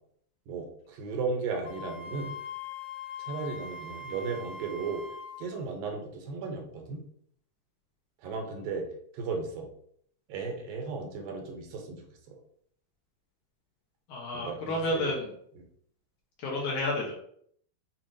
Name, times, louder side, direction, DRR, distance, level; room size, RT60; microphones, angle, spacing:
voice 1, 0.5-2.4 3.2-5.0 5.4-7.0 8.2-8.9 9.1-9.7 10.3-12.4 14.3-15.2, right 4 dB, 80° right, 2 dB, 2.5 m, -35 dB
Wind instrument woodwind instrument, 1.7-5.4, left 4 dB, 90° left, 2.4 m, -41 dB
voice 2, 14.1-15.3 16.4-17.1, left 1 dB, 70° left, -3 dB, 2.0 m, -30 dB
7.2 x 2.6 x 2.6 m, 0.66 s
omnidirectional pair, 4.1 m